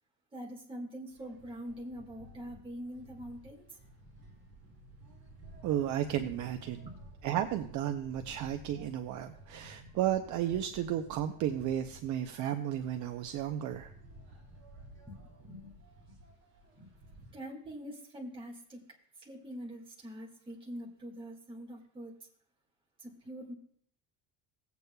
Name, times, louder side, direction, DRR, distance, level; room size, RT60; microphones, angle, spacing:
voice 1, 0.3-3.7 6.8-7.0 15.1-15.7 16.8-16.9 17.3-18.8 19.2-22.1 23.0-23.5, equal, 15° right, -2 dB, 1.7 m, -44 dB
sound 1, 1.1-17.3, right 2 dB, 30° right, 3.3 m, -54 dB
voice 2, 5.6-6.8 7.2-13.9, right 11 dB, 50° right, 7 dB, 0.6 m, -33 dB
18.5 x 8.1 x 2.2 m, 0.65 s
cardioid pair, 175°, 39 cm